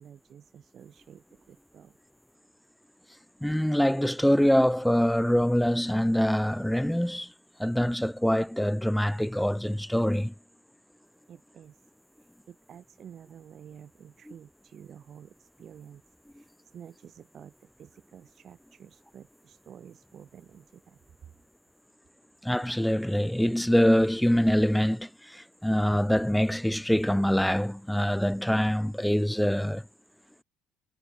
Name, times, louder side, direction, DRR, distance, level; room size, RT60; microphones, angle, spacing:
voice 1, 0.0-2.0 11.3-21.3, right 9 dB, 45° right, 4.3 m, -51 dB
voice 2, 3.4-7.3 7.6-10.3 22.4-29.8, equal, ahead, 0.9 m, -24 dB
supercardioid pair, 100°, 0 cm